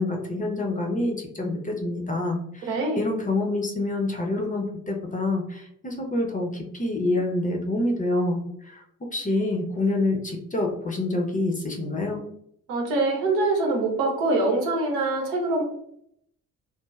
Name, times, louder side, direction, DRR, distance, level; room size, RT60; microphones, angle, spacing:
voice 1, 0.0-8.8 9.1-12.2, left 2 dB, 20° left, 1 dB, 0.6 m, -27 dB
voice 2, 2.7-3.0 12.7-15.6, right 2 dB, 75° right, 0 dB, 0.8 m, -24 dB
3.2 x 2.1 x 2.3 m, 0.72 s
figure-of-eight pair, 40°, 44 cm